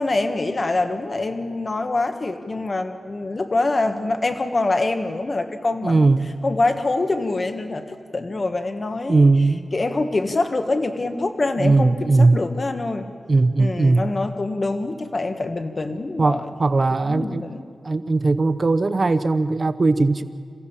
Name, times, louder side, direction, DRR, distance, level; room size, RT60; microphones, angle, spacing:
voice 1, 0.0-6.1 6.4-9.3 9.7-13.1 13.6-16.5 17.0-17.6, left 2 dB, 35° left, 7 dB, 1.5 m, -25 dB
voice 2, 5.8-6.3 9.1-9.7 11.6-12.4 13.3-14.1 16.2-17.4 17.8-20.2, right 3 dB, 40° right, 11 dB, 0.8 m, -18 dB
28.0 x 15.5 x 7.3 m, 2.4 s
wide cardioid pair, 115°, 0 cm